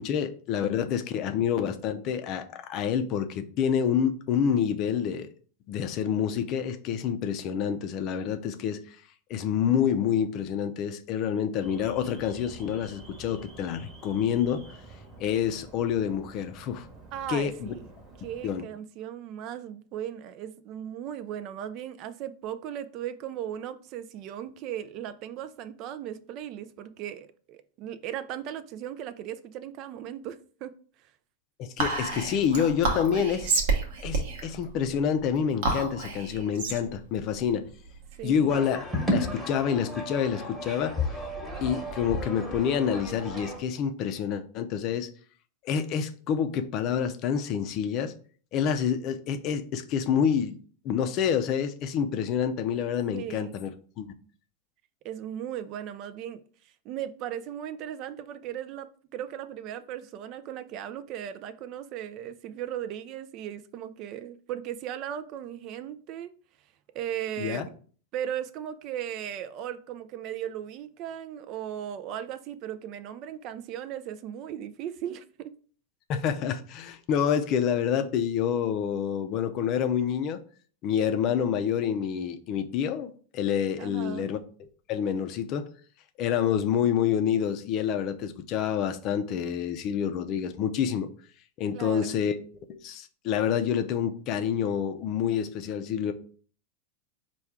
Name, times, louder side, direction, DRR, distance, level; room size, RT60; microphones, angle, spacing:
voice 1, 0.0-5.3 5.7-9.0 9.3-14.6 15.2-16.9 17.3-17.7 18.4-18.6 31.6-33.5 34.0-37.7 38.2-41.0 41.6-45.1 45.6-48.1 48.5-50.6 50.8-53.7 54.0-54.1 67.4-67.7 76.1-80.4 80.8-85.7 86.2-91.1 91.6-92.4 92.7-96.1, left 8 dB, 45° left, 0.5 m, -28 dB
Alarm, 11.6-18.5, right 3 dB, 30° right, 1.1 m, -49 dB
voice 2, 17.1-17.9 18.2-30.7 38.2-38.5 53.1-53.5 55.0-66.3 66.9-67.7 68.1-75.5 83.8-84.3 91.7-92.2, right 10 dB, 50° right, 0.3 m, -37 dB
Whispering, 31.8-38.5, right 3 dB, 65° right, 0.9 m, -30 dB
sound 1, 38.5-43.6, left 1 dB, 5° right, 1.1 m, -33 dB
4.4 x 2.3 x 3.5 m
hypercardioid pair, 105°, 0 cm